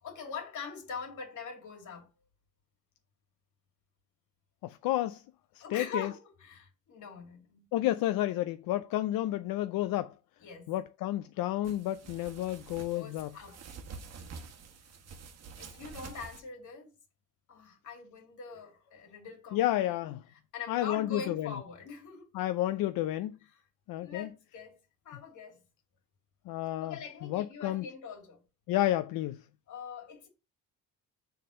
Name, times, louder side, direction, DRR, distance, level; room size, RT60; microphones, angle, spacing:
voice 1, 0.0-2.1 5.6-7.7 10.4-10.7 12.8-13.6 15.6-16.9 17.5-19.6 20.5-22.3 24.0-24.8 25.0-25.6 26.8-28.4 29.7-30.3, left 5 dB, 60° left, 2.5 m, -43 dB
voice 2, 4.6-5.2 5.5-6.1 7.7-10.1 10.7-13.3 19.5-20.2 20.7-21.5 22.3-23.4 23.9-24.3 26.5-27.0 27.2-27.8 28.7-29.4, left 14 dB, 85° left, 0.5 m, -31 dB
sound 1, 11.6-16.4, right 5 dB, 50° right, 1.1 m, -48 dB
6.8 x 3.9 x 6.3 m
cardioid pair, 165°, 34 cm